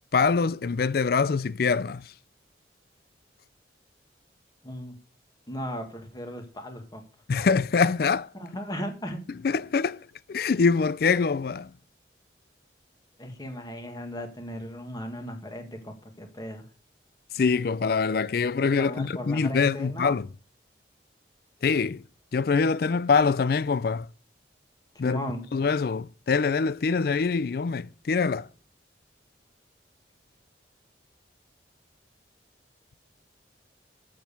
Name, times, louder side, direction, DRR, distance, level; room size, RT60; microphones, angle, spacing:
voice 1, 0.1-2.1 7.3-8.3 9.4-11.7 17.3-20.3 21.6-22.0 22.3-24.1 25.0-25.2 25.5-28.5, left 5 dB, 55° left, 0.4 m, -24 dB
voice 2, 4.6-5.0 5.5-7.0 8.4-9.2 13.2-16.6 18.8-20.1 25.0-25.4, equal, 20° left, 1.8 m, -36 dB
7.5 x 7.4 x 6.8 m
head